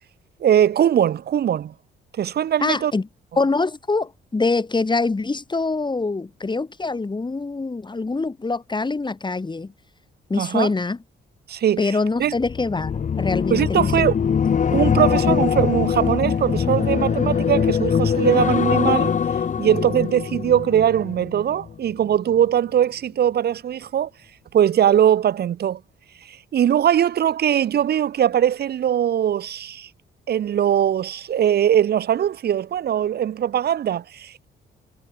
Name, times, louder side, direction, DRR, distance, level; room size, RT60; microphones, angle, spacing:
voice 1, 0.4-1.7 2.2-2.9 10.3-10.7 11.5-11.8 12.2-12.3 13.5-14.2 14.7-19.1 19.6-24.1 24.5-25.8 26.3-29.9 30.3-34.4, right 10 dB, 55° right, 0.8 m, -20 dB
voice 2, 2.6-3.1 3.4-9.7 10.3-11.0 11.8-14.3, left 3 dB, 25° left, 7.3 m, -24 dB
sound 1, 12.4-21.7 22.1-22.4, left 7 dB, 40° left, 1.0 m, -22 dB
cardioid pair, 100°, 19 cm